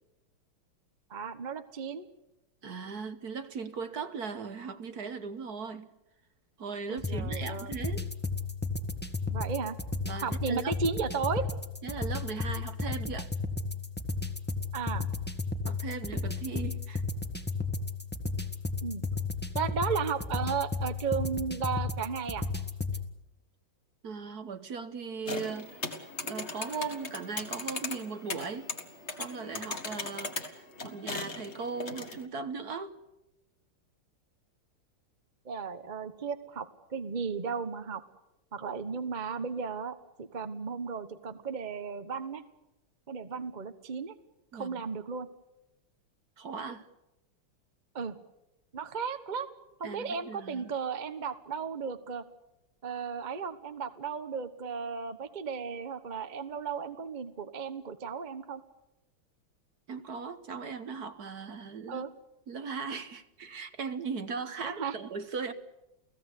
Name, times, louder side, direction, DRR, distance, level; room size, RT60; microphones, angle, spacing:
voice 1, 1.1-2.1 6.9-7.7 9.3-9.7 10.2-11.4 14.7-15.1 18.8-19.0 19.5-22.5 35.4-38.0 38.5-42.4 43.1-44.1 44.5-45.3 47.9-48.2 48.7-49.5 49.8-52.2 52.8-58.6 61.9-62.1 64.6-64.9, right 5 dB, 30° right, 9 dB, 1.0 m, -34 dB
voice 2, 2.6-5.9 6.6-8.1 10.1-10.7 11.8-13.3 15.6-17.0 24.0-28.7 29.2-33.0 44.5-44.8 46.4-46.9 49.8-50.7 59.9-62.0 62.5-65.5, right 5 dB, 55° right, 10 dB, 1.5 m, -38 dB
sound 1, 7.0-23.0, left 3 dB, 5° left, 1.5 m, -34 dB
sound 2, 25.3-32.3, left 3 dB, 35° left, 2.0 m, -38 dB
30.0 x 17.0 x 8.3 m, 0.94 s
omnidirectional pair, 2.3 m